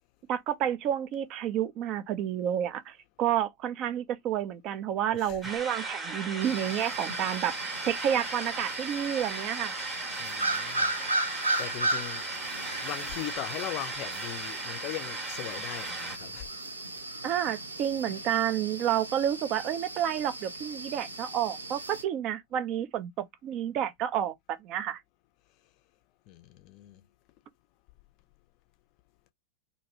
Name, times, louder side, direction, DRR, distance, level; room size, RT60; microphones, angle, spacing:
voice 1, 0.3-7.6 7.8-9.8 17.2-25.0, right 10 dB, 35° right, 0.5 m, -30 dB
voice 2, 5.1-5.4 10.2-10.9 11.6-12.3 12.8-16.5 26.3-27.0, left 15 dB, 40° left, 0.5 m, -39 dB
sound 1, 5.4-16.2, right 3 dB, 15° right, 0.9 m, -37 dB
sound 2, 6.4-22.0, right 2 dB, 80° right, 0.6 m, -36 dB
2.5 x 2.3 x 2.8 m
figure-of-eight pair, 90°, 0 cm